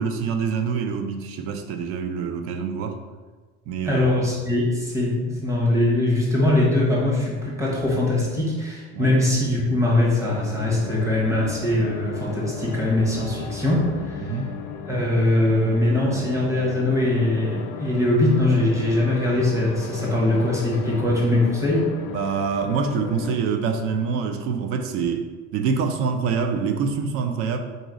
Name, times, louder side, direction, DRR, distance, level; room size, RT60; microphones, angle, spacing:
voice 1, 0.0-3.0 3.7-4.1 8.9-9.1 14.2-14.5 22.1-25.3 25.5-27.6, right 5 dB, 45° right, 6 dB, 0.4 m, -25 dB
voice 2, 3.9-14.3 14.9-21.9, left 1 dB, 10° right, -5 dB, 0.9 m, -22 dB
sound 1, 10.2-23.4, left 6 dB, 65° left, 0.6 m, -35 dB
3.9 x 2.7 x 4.7 m, 1.4 s
cardioid pair, 175°, 31 cm